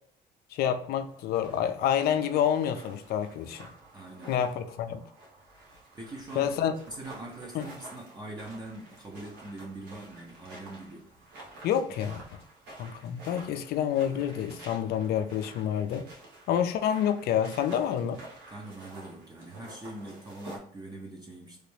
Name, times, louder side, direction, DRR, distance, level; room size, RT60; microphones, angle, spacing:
voice 1, 0.5-3.7 4.3-5.0 6.4-6.7 7.5-7.6 11.6-12.2 12.8-16.1 16.5-18.2, left 9 dB, 70° left, 0.4 m, -28 dB
sound 1, 1.1-20.6, right 2 dB, 85° right, 1.3 m, -50 dB
voice 2, 3.9-4.4 5.9-6.6 6.9-11.1 18.5-21.6, right 2 dB, 25° right, 0.7 m, -43 dB
3.2 x 2.5 x 3.3 m
cardioid pair, 110°, 17 cm